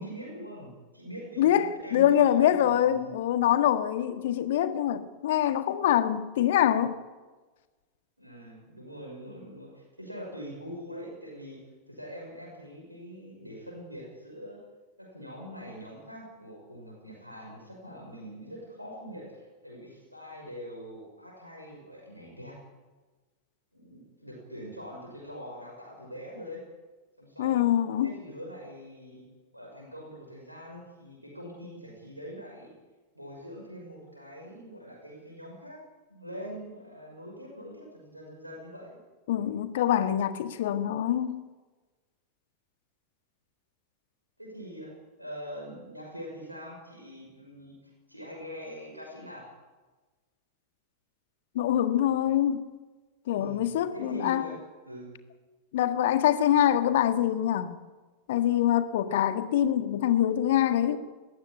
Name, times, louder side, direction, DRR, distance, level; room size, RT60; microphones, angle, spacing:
voice 1, 0.0-3.2 8.2-14.6 15.0-22.6 23.7-26.6 27.2-27.7 28.0-29.3 29.5-32.7 33.1-35.8 36.1-39.0 44.4-49.6 53.3-55.1, equal, 90° right, 6.0 m, -43 dB
voice 2, 1.4-7.0 27.4-28.1 39.3-41.5 51.6-52.7 53.3-54.5 55.7-57.8 58.3-61.0, left 11 dB, 55° left, 1.6 m, -25 dB
20.0 x 15.5 x 9.9 m
figure-of-eight pair, 90°, 0 cm